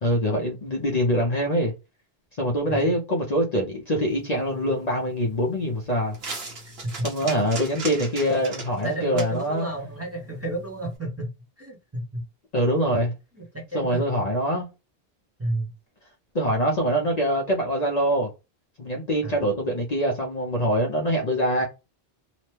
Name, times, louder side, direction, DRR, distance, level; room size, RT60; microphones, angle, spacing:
voice 1, 0.0-1.7 2.4-6.2 7.0-9.7 12.5-13.1 13.7-14.7 16.3-18.3 18.8-21.6, equal, 45° left, 0.7 m, -24 dB
sound 1, 4.1-11.0, right 3 dB, 75° right, 1.2 m, -39 dB
voice 2, 8.8-11.3 11.6-12.2 13.5-14.0 15.4-15.7 19.2-19.5, right 1 dB, 15° right, 0.8 m, -31 dB
2.9 x 2.1 x 3.1 m
omnidirectional pair, 1.1 m